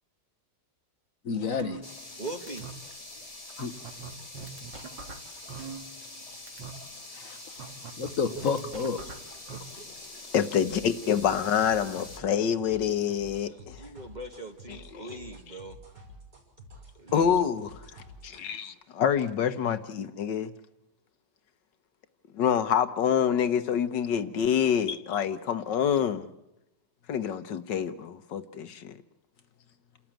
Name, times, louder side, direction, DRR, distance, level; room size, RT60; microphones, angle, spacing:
voice 1, 1.2-1.8 3.6-3.7 7.1-7.6 8.0-9.0 24.9-25.0, left 5 dB, 50° left, 1.3 m, -30 dB
sound 1, 1.6-2.2 2.5-2.7 3.2-3.3 3.6-6.2 6.5-6.7 7.6-9.6, right 5 dB, 90° right, 2.6 m, -41 dB
sound 2, 1.8-12.2, left 2 dB, 20° left, 1.9 m, -45 dB
voice 2, 2.2-2.7 9.5-9.9 13.4-15.8 17.0-17.4, right 2 dB, 25° right, 1.2 m, -41 dB
voice 3, 10.3-13.9 17.1-17.7 18.2-20.5 22.3-26.3 27.1-29.0, left 8 dB, 75° left, 1.6 m, -26 dB
sound 3, 10.6-18.5, equal, 60° right, 6.9 m, -49 dB
29.0 x 13.5 x 8.9 m
omnidirectional pair, 1.9 m